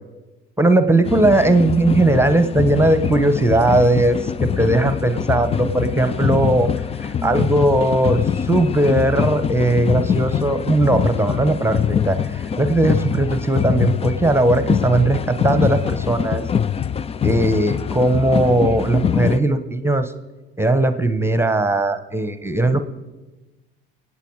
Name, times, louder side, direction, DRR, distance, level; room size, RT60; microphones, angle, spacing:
voice 1, 0.6-6.7 7.0-16.4 17.2-20.1 20.6-22.8, right 2 dB, 10° right, 10 dB, 1.1 m, -18 dB
sound 1, 1.0-19.4, left 8 dB, 20° left, 0.4 m, -23 dB
25.0 x 8.6 x 4.8 m, 1.1 s
hypercardioid pair, 65°, 29 cm